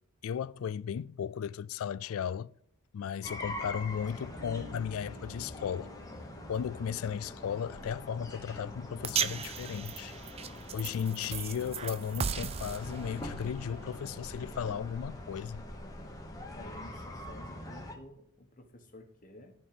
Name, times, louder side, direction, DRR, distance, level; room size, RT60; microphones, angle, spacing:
voice 1, 0.2-2.5 2.9-5.9 6.5-10.2 10.7-15.6, left 8 dB, 70° left, 0.3 m, -35 dB
sound 1, 3.2-18.0, left 1 dB, 15° left, 1.2 m, -44 dB
Guitar, 4.2-10.3, left 2 dB, 80° right, 2.6 m, -55 dB
sound 2, 9.0-15.4, right 7 dB, 30° right, 0.4 m, -38 dB
voice 2, 16.5-19.5, left 1 dB, 35° left, 1.3 m, -52 dB
11.5 x 4.5 x 6.9 m
head